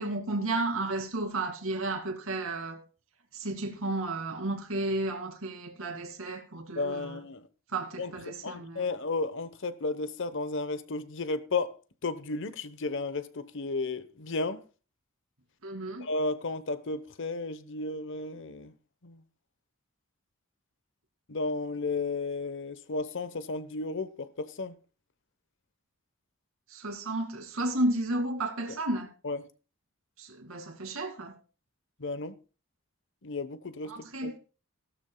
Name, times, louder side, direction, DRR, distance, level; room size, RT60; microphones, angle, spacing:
voice 1, 0.0-2.8 3.3-7.2 7.7-8.9 15.6-16.1 26.7-29.1 30.2-31.3 33.9-34.4, right 2 dB, 70° right, 2.5 m, -32 dB
voice 2, 6.7-7.5 8.0-8.1 8.4-11.7 12.0-14.6 16.0-18.7 19.0-19.2 21.3-24.7 28.7-28.8 29.2-29.4 32.0-32.3 33.2-33.9 34.2-34.3, left 3 dB, 60° left, 1.0 m, -33 dB
16.5 x 12.5 x 2.3 m
head